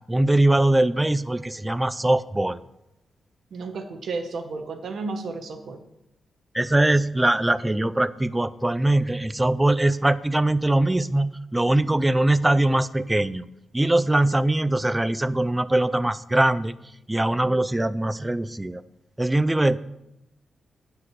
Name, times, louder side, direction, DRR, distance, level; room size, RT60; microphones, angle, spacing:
voice 1, 0.1-2.6 6.5-13.4 13.7-16.7 17.1-18.8 19.2-19.8, right 1 dB, 10° right, 15 dB, 0.4 m, -22 dB
voice 2, 3.5-5.8, right 3 dB, 65° right, 6 dB, 1.2 m, -32 dB
9.5 x 5.0 x 7.8 m, 0.87 s
cardioid pair, 105°, 0 cm